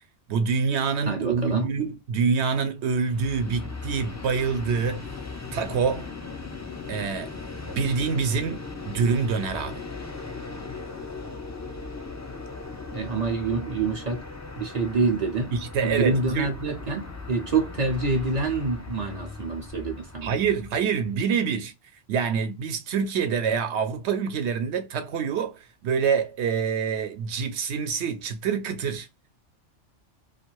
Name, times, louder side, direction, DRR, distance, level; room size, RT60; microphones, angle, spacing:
voice 1, 0.3-5.1 5.5-6.1 6.9-7.3 7.7-9.8 15.5-16.5 20.2-21.7 22.1-29.1, right 6 dB, 75° right, 0.9 m, -26 dB
voice 2, 1.1-1.7 12.9-14.2 14.6-15.5 15.8-20.4, right 3 dB, 45° right, 0.6 m, -26 dB
Train, 3.0-21.1, left 4 dB, 20° left, 0.4 m, -38 dB
2.6 x 2.3 x 3.0 m
omnidirectional pair, 1.2 m